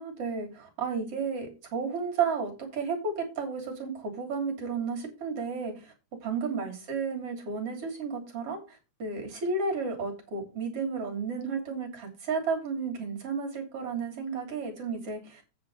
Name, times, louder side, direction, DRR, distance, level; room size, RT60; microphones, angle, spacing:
voice 1, 0.0-5.9 6.2-15.5, right 5 dB, 50° right, 1 dB, 4.1 m, -32 dB
9.0 x 5.6 x 5.5 m, 0.31 s
omnidirectional pair, 3.4 m